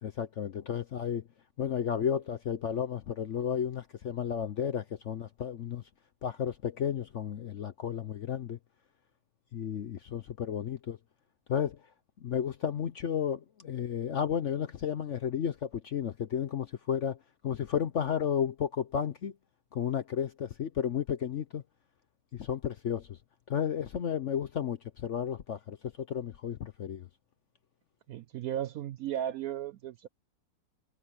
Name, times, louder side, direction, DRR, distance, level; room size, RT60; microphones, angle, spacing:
voice 1, 0.0-1.2 1.6-5.8 6.2-8.6 9.5-11.0 11.5-11.8 12.2-17.2 17.4-19.3 19.7-21.6 22.3-23.2 23.5-27.1, left 8 dB, 60° left, 0.8 m, -33 dB
voice 2, 28.1-30.1, right 11 dB, 70° right, 0.9 m, -35 dB
omnidirectional pair, 1.9 m